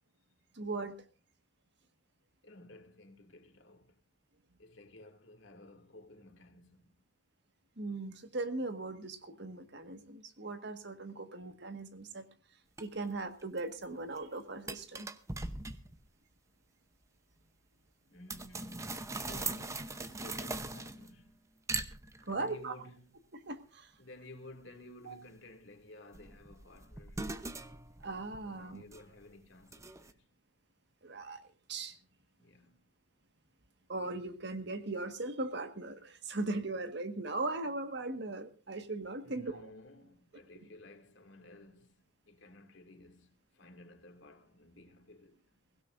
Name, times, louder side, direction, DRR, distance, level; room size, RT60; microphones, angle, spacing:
voice 1, 0.5-0.9 7.8-12.3 12.8-15.1 22.3-22.7 23.3-23.9 25.0-25.1 28.0-28.8 31.0-32.0 33.9-39.6, right 2 dB, 60° right, 1.7 m, -39 dB
voice 2, 2.4-4.0 4.6-6.9 18.1-21.4 22.4-23.1 24.0-27.3 28.4-30.2 32.4-32.9 39.2-45.4, left 1 dB, 65° left, 2.5 m, -54 dB
sound 1, 12.8-12.9 13.4-13.8 14.2-14.3 14.7-16.0 18.3-21.3 21.7-22.5 26.1-29.2 29.7-30.1, right 3 dB, 15° right, 0.8 m, -40 dB
22.5 x 16.5 x 2.6 m
head